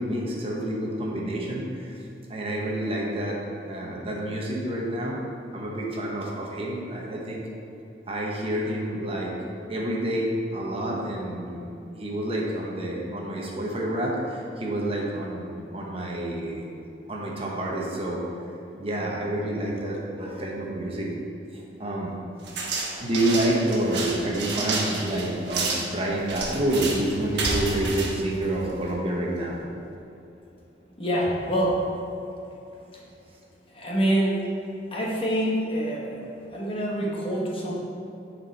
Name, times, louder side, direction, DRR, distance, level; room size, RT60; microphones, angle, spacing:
voice 1, 0.0-1.9 2.3-3.4 3.7-5.2 5.5-7.4 8.1-9.3 9.7-11.6 11.9-16.7 17.1-18.2 18.8-21.1 21.5-22.1 23.0-29.6, right 1 dB, 35° right, -3 dB, 1.0 m, -28 dB
sound 1, 22.4-29.0, right 3 dB, 70° right, 1.2 m, -30 dB
voice 2, 31.0-31.9 32.9-33.0 33.7-34.5 34.9-37.8, right 1 dB, 30° left, -3 dB, 1.1 m, -26 dB
9.5 x 4.5 x 4.1 m, 2.9 s
head